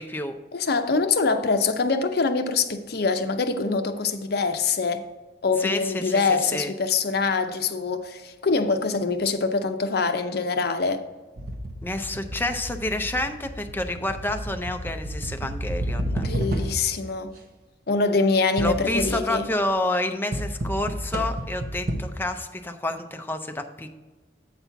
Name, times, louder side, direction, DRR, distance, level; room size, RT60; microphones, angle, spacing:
voice 1, 0.0-0.3 5.6-6.2 6.5-6.7 11.8-16.2 18.6-23.9, left 1 dB, 10° left, 0.5 m, -29 dB
voice 2, 0.5-5.0 5.4-11.0 16.1-17.4 17.9-19.5, left 4 dB, 60° left, 0.6 m, -24 dB
sound 1, 11.4-17.0 18.6-19.4 20.3-22.0, right 1 dB, 55° right, 0.8 m, -31 dB
7.9 x 4.2 x 5.8 m
head